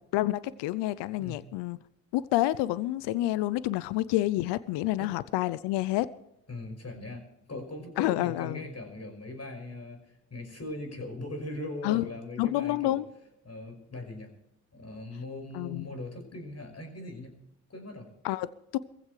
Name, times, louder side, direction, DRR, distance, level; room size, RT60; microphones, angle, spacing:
voice 1, 0.1-1.8 2.1-6.1 8.0-8.6 11.8-12.1 12.4-13.1 15.5-15.9 18.2-18.8, left 16 dB, 70° left, 0.7 m, -28 dB
voice 2, 6.5-13.0 13.5-14.3 14.7-17.4 17.7-18.1, left 2 dB, 35° left, 5.6 m, -40 dB
22.0 x 15.5 x 3.3 m
hypercardioid pair, 50°, 44 cm